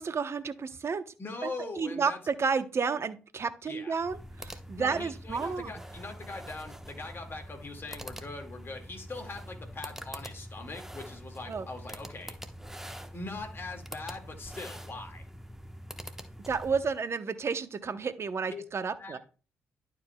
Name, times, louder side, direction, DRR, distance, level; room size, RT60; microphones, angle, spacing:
voice 1, 0.0-1.1 1.4-1.5 1.8-5.7 11.5-11.7 16.5-19.2, right 5 dB, 45° right, 12 dB, 0.8 m, -31 dB
voice 2, 1.2-2.2 3.7-3.9 4.7-12.4 13.1-15.2 18.5-18.6 19.0-19.2, left 3 dB, 40° left, 3 dB, 1.9 m, -41 dB
sound 1, 4.0-17.0, equal, 5° right, 1.0 m, -45 dB
11.5 x 5.0 x 2.2 m, 0.36 s
hypercardioid pair, 45°, 6 cm